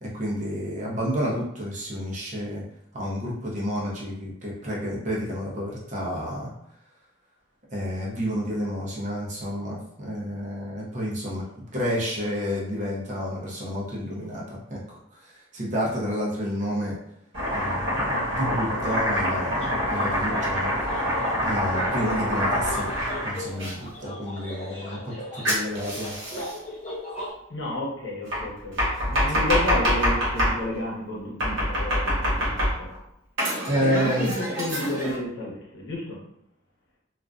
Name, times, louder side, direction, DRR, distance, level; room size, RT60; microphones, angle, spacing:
voice 1, 0.0-2.6 2.9-6.5 7.7-11.4 11.7-17.0 17.5-20.7 21.4-22.9 23.2-26.1 29.3-29.4 33.7-34.3, equal, 35° right, -5 dB, 0.6 m, -30 dB
Domestic sounds home sounds, 17.3-23.7 25.4-26.6 28.3-30.6 31.4-33.0 33.4-35.2, equal, 65° right, 1.0 m, -26 dB
sound 1, 19.5-27.3, left 1 dB, 30° left, 0.5 m, -38 dB
voice 2, 27.5-28.7 29.0-32.9 33.8-36.2, left 1 dB, 65° left, -5 dB, 0.8 m, -31 dB
2.4 x 2.1 x 2.4 m, 0.76 s
head